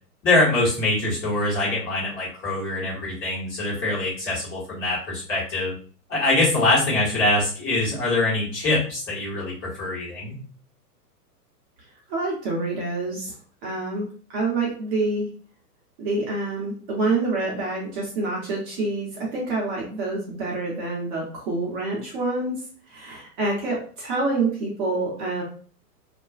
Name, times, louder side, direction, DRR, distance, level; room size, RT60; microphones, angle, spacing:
voice 1, 0.2-5.7 6.1-10.4, left 2 dB, 25° left, -6 dB, 1.2 m, -23 dB
voice 2, 12.1-13.4 13.6-15.3 16.0-25.4, right 2 dB, 30° right, -4 dB, 0.7 m, -27 dB
2.4 x 2.2 x 2.3 m, 0.42 s
figure-of-eight pair, 110°, 48 cm